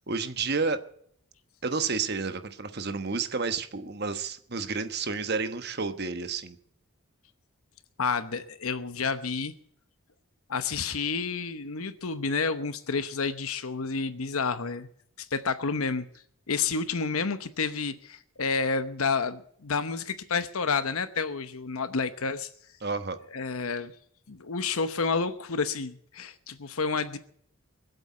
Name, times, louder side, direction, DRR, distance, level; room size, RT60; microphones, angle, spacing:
voice 1, 0.1-0.8 1.6-6.6 22.8-23.2, right 4 dB, 45° right, 9 dB, 1.2 m, -30 dB
voice 2, 8.0-9.5 10.5-14.9 15.2-16.0 16.5-22.5 23.3-23.9 24.3-27.2, left 5 dB, 80° left, 11 dB, 0.9 m, -30 dB
22.0 x 8.0 x 8.1 m, 0.66 s
head